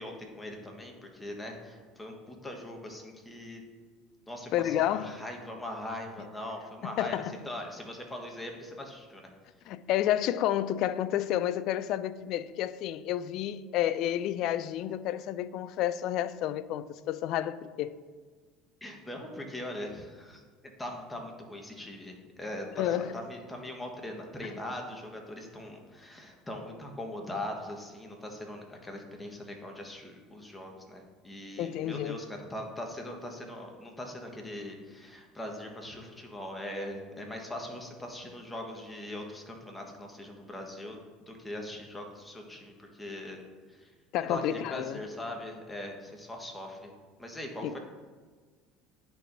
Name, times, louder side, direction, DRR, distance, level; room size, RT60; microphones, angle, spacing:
voice 1, 0.0-3.6 4.3-9.3 18.8-20.4 20.8-43.4 43.7-43.9 44.2-46.9 47.2-47.8, left 1 dB, 10° left, 1.3 m, -41 dB
voice 2, 4.5-5.2 7.0-7.3 9.7-18.0 22.8-23.1 24.4-24.5 31.6-32.2 44.1-45.0 47.6-47.7, left 12 dB, 60° left, 0.3 m, -30 dB
10.5 x 4.5 x 2.7 m
supercardioid pair, 90°, 0 cm